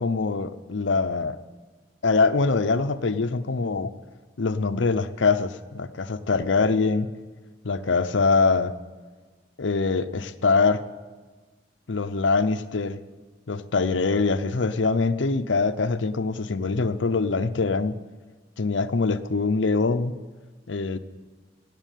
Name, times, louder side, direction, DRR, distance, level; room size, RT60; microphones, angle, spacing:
voice 1, 0.0-1.4 2.0-3.9 4.4-7.1 7.6-8.8 9.6-10.8 11.9-13.0 13.5-17.9 18.6-20.1 20.7-21.0, left 4 dB, 80° left, 12 dB, 0.7 m, -23 dB
16.5 x 7.5 x 9.1 m, 1.4 s
head